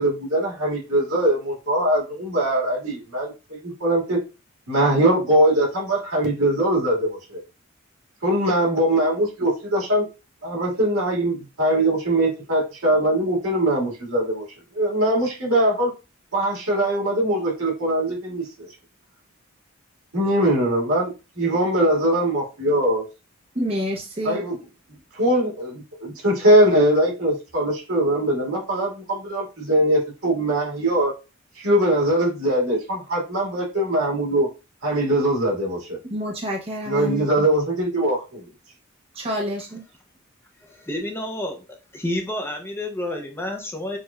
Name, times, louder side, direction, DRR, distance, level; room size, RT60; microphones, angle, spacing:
voice 1, 0.0-4.2 4.7-7.4 8.2-10.1 10.4-14.5 14.7-15.9 16.3-18.7 20.1-23.0 24.2-24.5 25.1-31.1 31.6-34.5 34.8-36.0 36.9-38.4, right 1 dB, 85° right, -3 dB, 1.7 m, -21 dB
voice 2, 23.5-24.4 36.1-37.5 39.1-39.8, equal, 25° right, 0 dB, 0.6 m, -28 dB
voice 3, 40.6-41.6 41.9-44.0, left 1 dB, 10° left, 2 dB, 0.5 m, -29 dB
6.2 x 2.4 x 2.2 m, 0.30 s
head